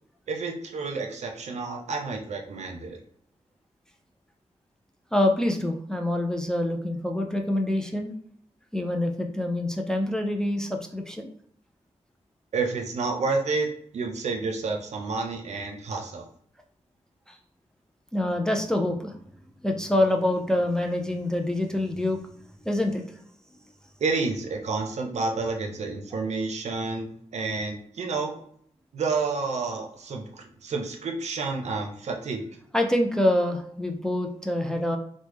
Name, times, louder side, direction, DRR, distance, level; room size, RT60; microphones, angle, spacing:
voice 1, 0.3-3.0 12.5-13.7 13.9-16.3 24.0-28.4 28.9-32.5, right 4 dB, 75° right, 3 dB, 0.5 m, -30 dB
voice 2, 5.1-8.1 8.7-11.3 17.3-17.4 18.1-19.2 19.6-22.2 22.6-23.0 32.7-35.0, left 1 dB, 5° left, 3 dB, 0.3 m, -26 dB
3.1 x 2.1 x 3.3 m, 0.63 s
wide cardioid pair, 150°, 12 cm